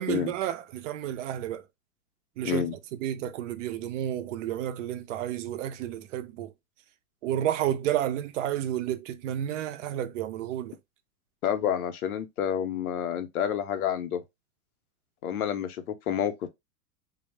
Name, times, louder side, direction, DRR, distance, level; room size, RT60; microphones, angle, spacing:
voice 1, 0.0-1.6 2.4-6.5 7.2-10.8, right 11 dB, 60° right, 0.5 m, -31 dB
voice 2, 2.4-2.7 11.4-14.2 15.2-16.5, left 9 dB, 90° left, 0.6 m, -29 dB
2.1 x 2.0 x 3.1 m
hypercardioid pair, 130°, 42 cm